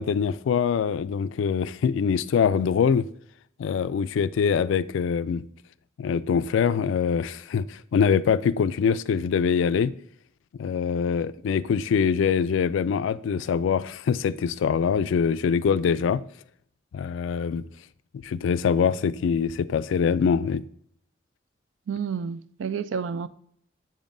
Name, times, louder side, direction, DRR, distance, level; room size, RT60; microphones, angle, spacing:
voice 1, 0.0-3.1 3.6-5.4 6.0-9.9 10.6-16.2 16.9-17.7 18.2-20.6, left 6 dB, 75° left, 0.3 m, -24 dB
voice 2, 21.9-23.3, right 6 dB, 75° right, 0.4 m, -30 dB
7.5 x 7.2 x 2.6 m
head